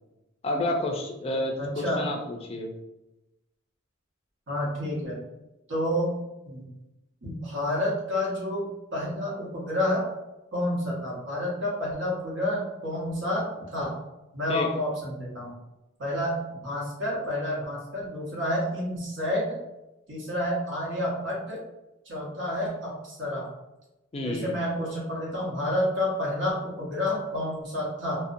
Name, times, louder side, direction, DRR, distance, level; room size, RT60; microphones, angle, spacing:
voice 1, 0.4-2.7 14.5-14.7 24.1-24.6, left 1 dB, 30° left, 2 dB, 0.3 m, -30 dB
voice 2, 1.6-2.0 4.5-5.2 5.7-6.2 6.4-6.6 7.2-10.1 10.5-13.9 14.3-15.5 16.0-19.6 20.1-21.6 22.1-23.5 24.2-28.2, left 1 dB, 65° right, -4 dB, 0.9 m, -29 dB
2.6 x 2.1 x 2.5 m, 0.97 s
head